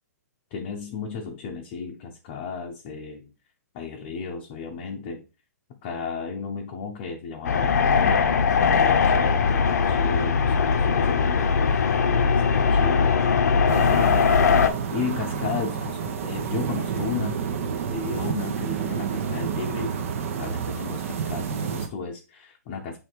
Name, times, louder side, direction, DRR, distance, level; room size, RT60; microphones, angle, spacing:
voice 1, 0.5-3.3 3.7-5.2 5.7-8.3 8.8-14.3 14.6-17.4 17.9-20.0 20.4-23.0, left 5 dB, 25° left, 0 dB, 0.8 m, -34 dB
sound 1, 7.4-14.7, left 5 dB, 75° left, 0.9 m, -20 dB
sound 2, 13.7-21.9, right 7 dB, 50° right, 1.1 m, -29 dB
6.9 x 3.5 x 4.6 m, 0.30 s
hypercardioid pair, 170°, 9 cm